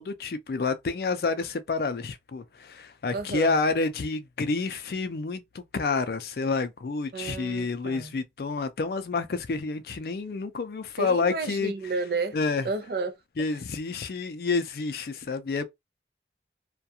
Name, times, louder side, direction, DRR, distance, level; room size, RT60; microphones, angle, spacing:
voice 1, 0.0-11.7 12.3-12.7 13.4-15.6, left 4 dB, 60° left, 0.4 m, -29 dB
voice 2, 3.1-3.6 7.1-8.1 11.0-12.4 12.6-13.5, right 3 dB, 60° right, 0.4 m, -32 dB
2.3 x 2.2 x 2.7 m
head